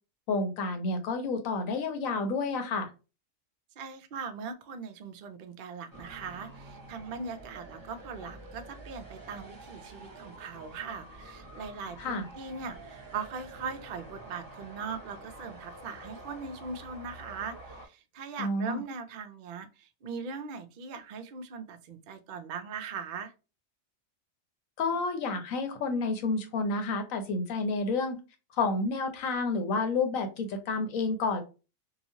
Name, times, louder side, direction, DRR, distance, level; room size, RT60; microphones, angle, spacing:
voice 1, 0.3-2.9 12.0-12.3 18.4-18.8 24.8-28.2 28.5-31.4, left 3 dB, 85° left, 1.1 m, -30 dB
voice 2, 3.8-23.3, right 5 dB, 70° right, 0.4 m, -40 dB
sound 1, 5.9-17.9, right 2 dB, 20° right, 0.8 m, -48 dB
2.9 x 2.3 x 2.6 m
omnidirectional pair, 1.4 m